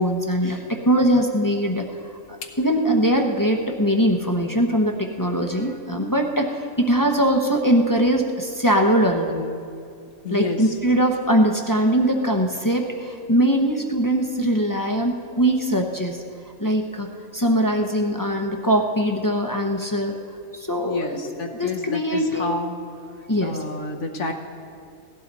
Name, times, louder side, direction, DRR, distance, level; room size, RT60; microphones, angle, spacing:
voice 1, 0.0-2.2 2.6-9.4 10.3-16.2 16.6-20.2 20.5-21.2 21.5-22.5 23.3-23.6, equal, 20° left, 2 dB, 0.7 m, -21 dB
voice 2, 10.2-10.8 20.8-22.8 23.1-24.3, left 3 dB, 65° left, 3 dB, 1.3 m, -29 dB
17.0 x 14.5 x 4.1 m, 2.4 s
omnidirectional pair, 1.4 m